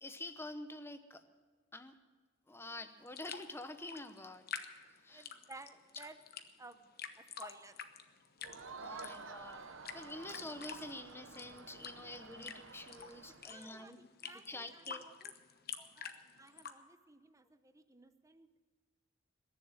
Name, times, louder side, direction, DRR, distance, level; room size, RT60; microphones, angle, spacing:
voice 1, 0.0-1.2 1.7-1.9 2.5-4.5 5.0-5.3 8.8-9.7 9.9-14.1 14.5-15.0 15.8-15.9, left 2 dB, 15° left, 9 dB, 0.9 m, -47 dB
sound 1, 3.1-16.7, left 8 dB, 50° left, 1.0 m, -49 dB
voice 2, 5.1-6.2 6.6-6.9 7.2-7.8 13.4-15.3 16.0-16.1 16.4-18.5, right 3 dB, 15° right, 10 dB, 0.8 m, -55 dB
Crowd, 8.4-13.7, right 4 dB, 85° right, 1.0 m, -51 dB
21.5 x 7.3 x 8.9 m, 1.4 s
head